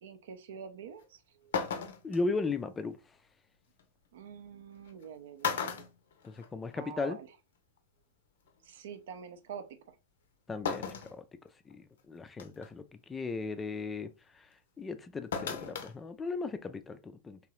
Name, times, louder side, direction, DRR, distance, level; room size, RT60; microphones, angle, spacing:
voice 1, 0.0-1.9 4.1-5.9 6.8-7.4 8.6-10.0 12.5-12.7, right 7 dB, 60° right, 0.5 m, -47 dB
sound 1, 1.0-1.1 1.5-2.2 3.8-3.9 4.9-5.0 5.4-6.8 7.1-7.2 8.5-8.6 10.7-11.2 11.7-11.8 12.4-12.7 15.3-15.9 16.3-16.4, left 6 dB, 60° left, 0.6 m, -35 dB
voice 2, 2.0-3.0 6.2-7.2 10.5-11.2 11.7-14.1 14.3-14.5 14.8-17.4, left 3 dB, 15° left, 0.4 m, -36 dB
3.6 x 3.0 x 3.0 m
figure-of-eight pair, 90°, 0 cm